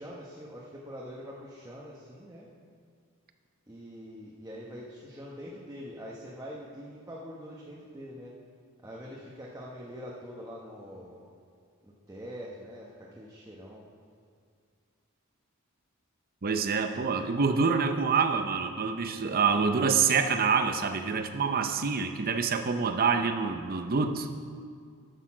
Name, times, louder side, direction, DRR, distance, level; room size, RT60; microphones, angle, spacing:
voice 1, 0.0-2.5 3.7-8.3 8.8-11.3 11.8-13.8, equal, 15° right, -5 dB, 1.0 m, -44 dB
voice 2, 16.4-24.3, right 5 dB, 40° right, 8 dB, 0.6 m, -26 dB
10.0 x 6.7 x 6.1 m, 2.2 s
head